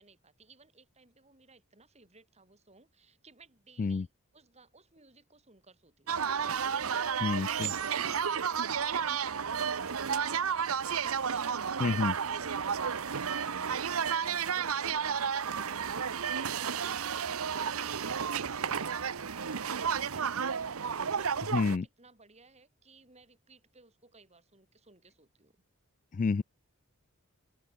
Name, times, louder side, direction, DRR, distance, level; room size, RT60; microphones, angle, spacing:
voice 1, 0.0-6.2 6.9-25.6, right 3 dB, 30° right, 6.4 m, -60 dB
sound 1, 6.1-21.8, right 7 dB, 75° right, 0.8 m, -32 dB
voice 2, 7.2-7.7 11.8-12.1 21.5-21.8 26.1-26.4, left 4 dB, 35° left, 0.3 m, -29 dB
open air
head